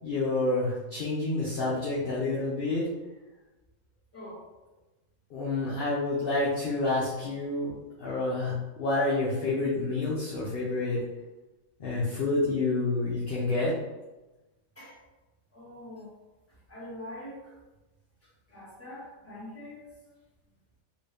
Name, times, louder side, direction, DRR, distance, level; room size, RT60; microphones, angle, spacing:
voice 1, 0.0-2.9 5.3-7.7 8.0-11.0 11.8-13.7, left 2 dB, 50° left, -6 dB, 0.7 m, -28 dB
voice 2, 4.1-4.5 14.7-15.0 15.5-16.1 16.7-17.5 18.5-19.9, left 1 dB, 10° left, -7 dB, 1.3 m, -43 dB
3.0 x 2.6 x 3.3 m, 1.1 s
omnidirectional pair, 1.5 m